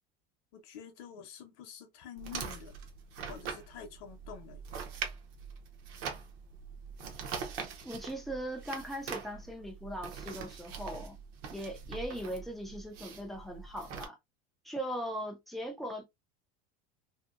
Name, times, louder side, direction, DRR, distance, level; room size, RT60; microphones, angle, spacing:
voice 1, 0.5-2.8 3.3-4.6, left 8 dB, 50° left, 0.7 m, -48 dB
sound 1, 2.2-14.1, right 6 dB, 45° right, 0.7 m, -43 dB
voice 2, 7.8-11.2 11.5-14.2 14.6-16.1, equal, ahead, 0.3 m, -39 dB
2.7 x 2.5 x 2.4 m
supercardioid pair, 165°, 29 cm